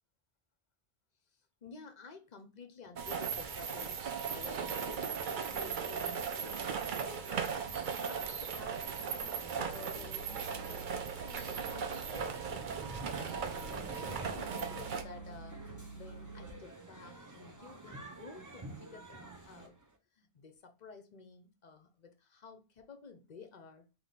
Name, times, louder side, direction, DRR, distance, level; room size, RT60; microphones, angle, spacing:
voice 1, 1.6-7.5 7.9-13.5 13.9-15.6 15.9-19.7 20.2-23.9, left 4 dB, 50° left, 0.7 m, -52 dB
sound 1, 3.0-15.0, right 6 dB, 55° right, 0.7 m, -37 dB
sound 2, 9.5-16.6, right 3 dB, 25° left, 1.3 m, -50 dB
sound 3, 12.1-19.9, right 2 dB, 20° right, 0.7 m, -49 dB
3.5 x 3.0 x 4.0 m
omnidirectional pair, 1.1 m